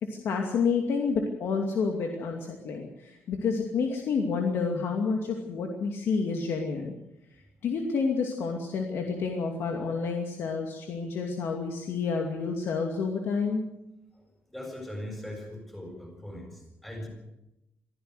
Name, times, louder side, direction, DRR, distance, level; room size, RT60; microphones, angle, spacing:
voice 1, 0.0-6.9 7.6-13.7, left 5 dB, 65° left, 2 dB, 2.6 m, -29 dB
voice 2, 14.5-17.1, left 1 dB, 5° left, 2 dB, 7.5 m, -40 dB
23.0 x 15.5 x 8.0 m, 0.91 s
cardioid pair, 160°, 4 cm